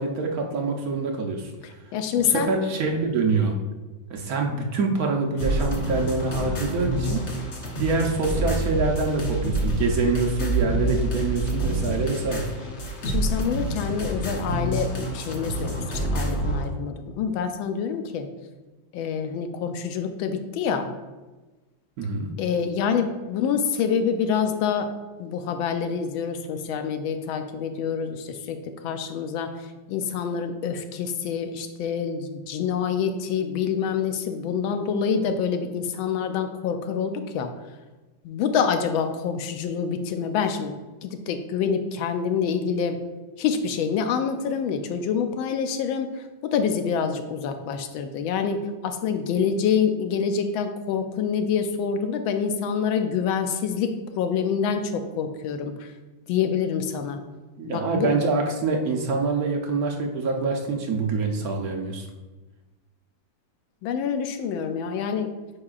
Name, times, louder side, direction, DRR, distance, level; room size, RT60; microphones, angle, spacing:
voice 1, 0.0-1.5 2.2-3.5 4.1-7.2 7.7-12.5 22.0-22.3 57.6-62.1, right 3 dB, 65° right, 2 dB, 1.0 m, -25 dB
voice 2, 1.9-2.6 13.0-18.3 18.9-20.9 22.4-24.9 25.2-37.5 38.2-40.8 41.0-43.0 43.4-55.9 56.3-57.2 57.6-58.1 63.8-65.3, left 6 dB, 85° left, 7 dB, 1.4 m, -26 dB
sound 1, 5.4-16.6, right 1 dB, 45° left, 1.0 m, -27 dB
8.6 x 4.8 x 2.4 m, 1.2 s
omnidirectional pair, 2.2 m